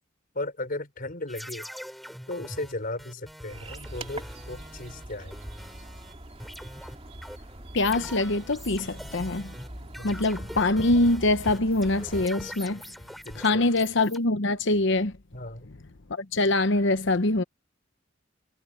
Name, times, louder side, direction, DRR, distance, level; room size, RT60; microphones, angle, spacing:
voice 1, 0.4-1.7 2.3-5.4 10.0-10.2 13.3-13.7 15.3-15.7, left 2 dB, 45° left, 5.2 m, -36 dB
sound 1, 1.3-6.1 6.4-14.2, equal, ahead, 5.6 m, -43 dB
sound 2, 3.5-12.3, right 1 dB, 30° right, 2.7 m, -43 dB
voice 2, 7.7-9.5 10.0-12.8 13.4-15.1 16.2-17.4, left 2 dB, 65° left, 1.0 m, -24 dB
head